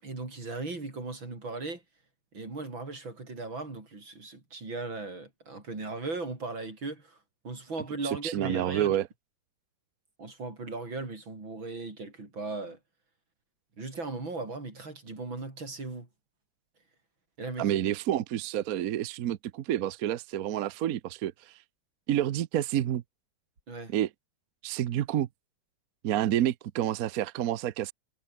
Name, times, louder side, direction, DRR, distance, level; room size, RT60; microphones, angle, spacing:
voice 1, 0.0-1.8 2.3-7.2 7.4-9.0 10.2-12.8 13.8-16.1 17.4-17.8 23.7-23.9, right 3 dB, 85° right, 6.5 m, -37 dB
voice 2, 8.0-9.1 17.6-21.5 22.1-23.0 23.9-24.1 24.6-25.3 26.0-27.9, right 12 dB, 60° right, 1.0 m, -29 dB
omnidirectional pair, 2.1 m